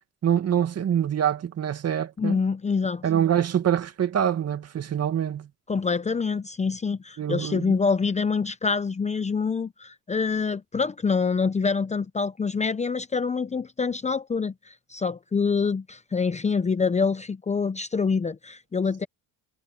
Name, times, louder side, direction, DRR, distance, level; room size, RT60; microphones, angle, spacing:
voice 1, 0.2-2.4 3.0-5.5 7.2-7.7, right 9 dB, 40° right, 2.1 m, -25 dB
voice 2, 2.2-3.0 5.7-19.1, left 5 dB, 20° left, 0.7 m, -26 dB
cardioid pair, 115°, 37 cm